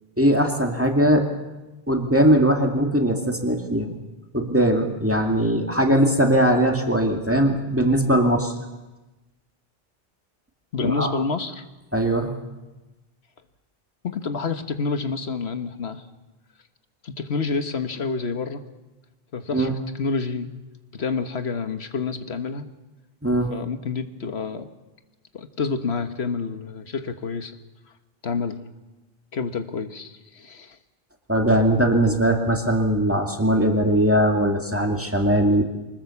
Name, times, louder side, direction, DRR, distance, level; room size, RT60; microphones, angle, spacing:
voice 1, 0.2-1.3 1.9-4.0 4.3-8.5 10.8-11.1 11.9-12.3 19.5-19.7 23.2-23.5 31.3-35.6, right 1 dB, 15° right, 2 dB, 2.2 m, -20 dB
voice 2, 10.7-11.6 14.0-16.0 17.0-18.6 19.3-20.5 20.9-22.7 23.5-24.7 25.3-27.6 28.2-28.6 29.3-30.8, left 4 dB, 90° left, 9 dB, 1.6 m, -28 dB
24.5 x 20.0 x 7.1 m, 1.1 s
omnidirectional pair, 1.0 m